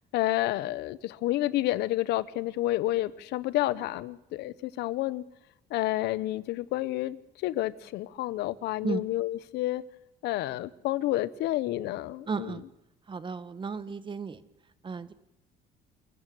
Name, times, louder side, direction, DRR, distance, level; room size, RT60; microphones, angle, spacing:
voice 1, 0.1-5.2 5.7-7.2 7.4-9.8 10.2-12.5, left 16 dB, 85° left, 0.9 m, -29 dB
voice 2, 12.3-12.6 13.1-14.4 14.8-15.1, right 5 dB, 30° right, 1.3 m, -34 dB
27.5 x 14.5 x 7.8 m
cardioid pair, 110°, 17 cm